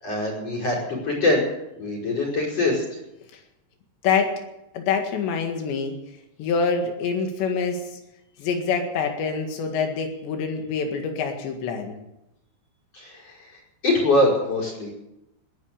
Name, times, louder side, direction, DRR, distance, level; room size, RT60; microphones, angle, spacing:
voice 1, 0.0-1.5 1.8-2.8 12.9-13.3 13.8-14.9, left 2 dB, 35° left, 0 dB, 6.1 m, -23 dB
voice 2, 4.0-4.4 4.7-5.9 6.4-8.0 8.4-12.0, left 5 dB, 80° left, 4 dB, 4.2 m, -25 dB
19.5 x 11.0 x 6.7 m, 0.87 s
omnidirectional pair, 5.1 m